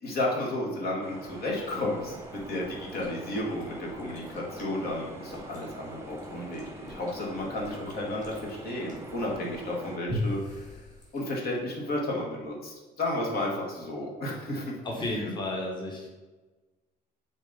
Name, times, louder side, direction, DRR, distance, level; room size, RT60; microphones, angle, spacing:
voice 1, 0.0-10.8 11.1-14.7 15.2-15.3, left 1 dB, 65° left, -2 dB, 1.8 m, -32 dB
sound 1, 1.0-10.0, right 1 dB, 15° right, 0.8 m, -44 dB
Chewing mastication, 1.4-11.6, left 1 dB, 45° left, 2.3 m, -42 dB
voice 2, 14.8-16.1, left 1 dB, 25° left, -1 dB, 1.3 m, -32 dB
7.1 x 4.3 x 4.1 m, 1.2 s
cardioid pair, 110°, 17 cm